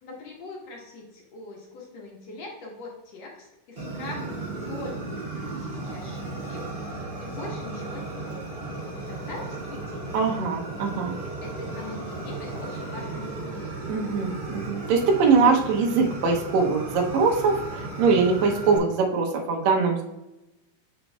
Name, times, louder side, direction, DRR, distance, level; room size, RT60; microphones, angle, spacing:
voice 1, 0.0-8.7 9.1-10.2 11.4-13.8, left 2 dB, 60° left, -2 dB, 2.0 m, -42 dB
Fire, 3.8-18.8, right 2 dB, 25° right, 1.3 m, -35 dB
voice 2, 10.1-11.2 13.9-20.0, right 4 dB, 75° right, 0 dB, 1.6 m, -22 dB
8.2 x 6.1 x 2.3 m, 0.96 s
omnidirectional pair, 4.1 m